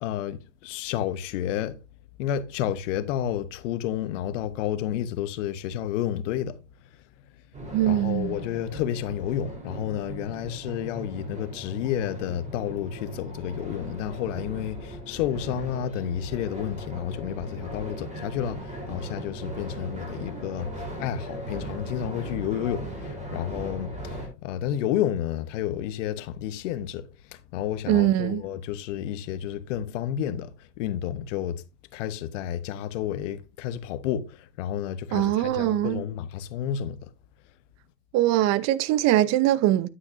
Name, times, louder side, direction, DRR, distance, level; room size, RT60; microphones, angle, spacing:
voice 1, 0.0-1.8 2.2-6.5 7.8-27.1 27.5-30.5 30.8-31.6 31.9-37.0, left 10 dB, 70° left, 1.0 m, -30 dB
sound 1, 7.5-24.3, right 1 dB, 20° right, 3.8 m, -38 dB
voice 2, 7.7-8.4 27.9-28.4 35.1-36.0 38.1-39.9, right 13 dB, 45° right, 0.8 m, -22 dB
9.6 x 8.3 x 2.6 m
hypercardioid pair, 110°, 38 cm